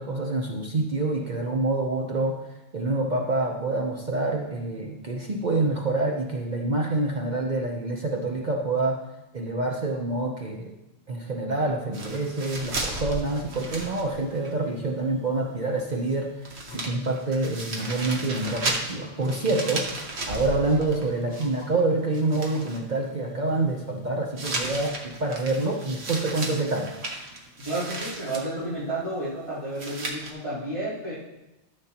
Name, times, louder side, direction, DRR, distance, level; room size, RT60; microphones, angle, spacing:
voice 1, 0.0-2.4 2.7-9.0 9.3-10.7 11.1-20.0 20.3-26.9, right 2 dB, 45° right, 0 dB, 0.9 m, -27 dB
sound 1, 11.9-14.5 14.8-14.9 16.1-16.2 16.4-21.8 22.1-22.8 24.4-28.5 29.7-30.3, right 2 dB, 75° right, 1.5 m, -34 dB
sound 2, 16.7-17.0 17.6-22.0, left 4 dB, 55° left, 1.4 m, -45 dB
voice 2, 27.6-31.1, right 2 dB, 25° right, -15 dB, 3.8 m, -31 dB
13.0 x 7.0 x 2.9 m, 1.0 s
omnidirectional pair, 1.1 m